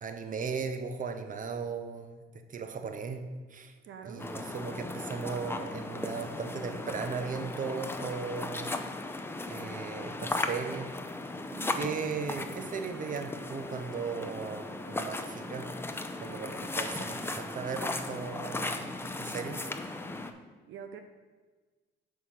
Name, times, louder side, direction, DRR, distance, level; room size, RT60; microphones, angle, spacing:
voice 1, 0.0-2.2 2.5-3.2 3.5-3.7 4.0-8.7 9.5-10.9 11.8-15.7 16.2-19.6, right 5 dB, 40° right, 7 dB, 0.8 m, -37 dB
voice 2, 3.9-4.3 11.5-11.9 20.7-21.0, right 7 dB, 75° right, 7 dB, 0.6 m, -45 dB
sound 1, 4.2-20.3, left 2 dB, 10° left, 0.6 m, -37 dB
6.5 x 4.8 x 5.8 m, 1.4 s
cardioid pair, 90°, 20 cm